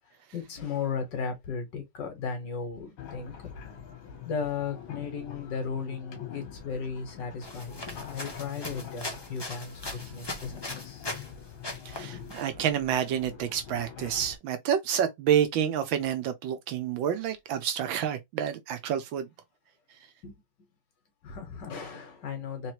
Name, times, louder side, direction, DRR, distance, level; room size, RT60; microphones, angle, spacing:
voice 1, 0.3-3.7 4.2-11.1 13.3-13.4 20.2-20.3 21.2-22.7, left 5 dB, 65° left, 1.9 m, -36 dB
sound 1, 3.0-14.4, left 8 dB, 85° left, 1.9 m, -44 dB
sound 2, 7.4-11.3 11.6-12.5, left 1 dB, 30° left, 0.4 m, -40 dB
voice 2, 11.8-19.3, right 9 dB, 80° right, 1.5 m, -28 dB
4.0 x 3.1 x 2.9 m
omnidirectional pair, 2.1 m